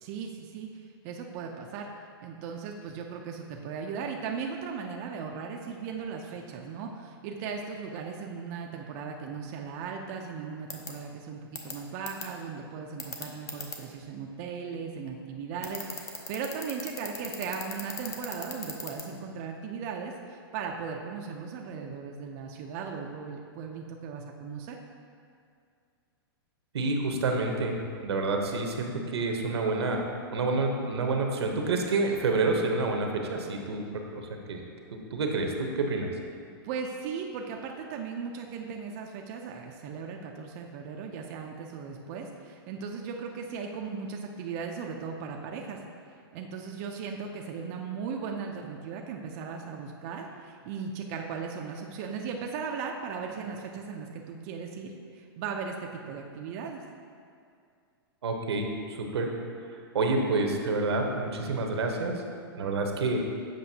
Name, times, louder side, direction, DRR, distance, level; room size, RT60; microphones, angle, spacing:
voice 1, 0.0-1.9 2.2-24.8 36.6-45.8 46.3-56.8, right 5 dB, 35° right, 2 dB, 0.4 m, -37 dB
sound 1, 10.7-10.9 11.6-11.7 12.1-12.2 13.0-13.8 15.6-19.0, left 5 dB, 20° left, 0.6 m, -36 dB
voice 2, 26.7-30.0 30.3-34.2 34.5-34.6 34.9-36.1 58.2-59.3 59.9-62.1 62.5-63.2, right 3 dB, 85° right, 2 dB, 0.9 m, -28 dB
7.6 x 5.1 x 2.8 m, 2.3 s
hypercardioid pair, 140°, 13 cm